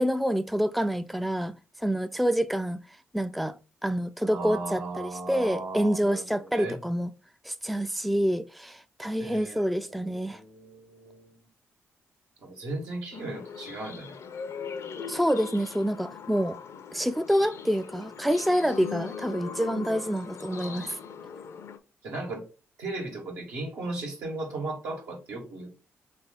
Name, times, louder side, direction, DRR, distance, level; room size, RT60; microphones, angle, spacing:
voice 1, 0.0-2.8 3.1-7.1 7.4-10.4 15.1-16.6 16.9-21.0, equal, ahead, 0.3 m, -27 dB
voice 2, 4.2-6.2 6.5-6.8 9.2-11.5 12.4-14.2 20.5-21.0 22.0-22.5 22.8-25.7, right 2 dB, 80° right, 1.7 m, -36 dB
sound 1, 13.1-21.8, left 6 dB, 65° left, 0.5 m, -40 dB
3.9 x 3.4 x 3.8 m
supercardioid pair, 55°, 5 cm